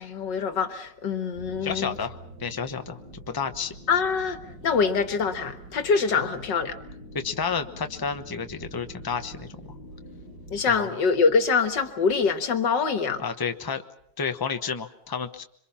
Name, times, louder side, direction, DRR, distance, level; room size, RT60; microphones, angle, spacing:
voice 1, 0.0-1.9 3.9-6.8 10.5-13.2, left 5 dB, 70° left, 8 dB, 2.2 m, -24 dB
sound 1, 1.3-10.7, right 1 dB, 70° right, 4.1 m, -45 dB
voice 2, 1.6-3.8 6.2-6.3 7.1-9.6 10.6-10.9 13.2-13.8 14.2-15.4, left 6 dB, 15° left, 8 dB, 0.7 m, -31 dB
27.0 x 24.5 x 5.8 m, 0.72 s
omnidirectional pair, 2.0 m